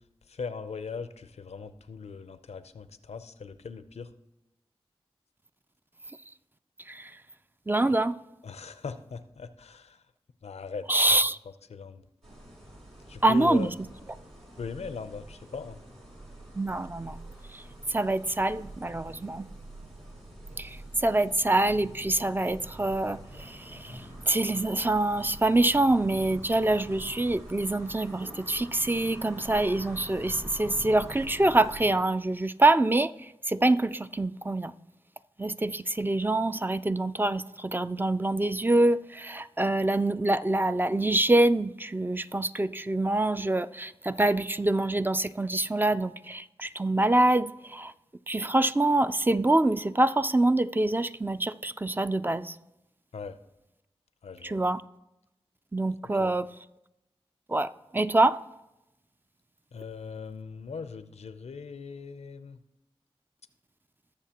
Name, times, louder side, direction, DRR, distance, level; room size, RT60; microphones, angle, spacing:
voice 1, 0.3-4.1 8.4-10.0 10.4-11.2 11.7-12.0 13.1-13.7 14.6-15.8 53.1-53.4 54.2-54.6 56.2-56.3 59.7-62.6, left 5 dB, 85° left, 0.5 m, -39 dB
voice 2, 7.7-8.2 10.9-11.4 13.2-13.7 16.6-17.2 17.5-17.6 17.9-19.5 20.6-34.7 35.4-47.9 48.3-52.6 54.4-54.8 55.7-56.5 57.5-58.4, right 2 dB, 20° right, 0.3 m, -25 dB
sound 1, 12.2-31.9, right 1 dB, 85° right, 2.7 m, -46 dB
19.5 x 6.8 x 2.9 m
cardioid pair, 50°, 11 cm